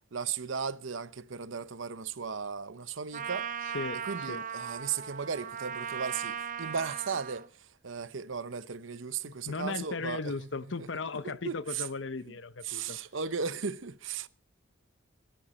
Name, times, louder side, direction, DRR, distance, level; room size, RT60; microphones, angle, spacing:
voice 1, 0.1-3.5 4.0-10.5 10.8-10.9 11.2-11.9 12.6-14.3, right 6 dB, 85° right, 0.8 m, -36 dB
Trumpet, 3.1-7.5, right 7 dB, 40° right, 0.7 m, -37 dB
voice 2, 3.7-4.4 9.2-13.0, left 4 dB, 75° left, 0.8 m, -37 dB
17.0 x 13.0 x 4.2 m
head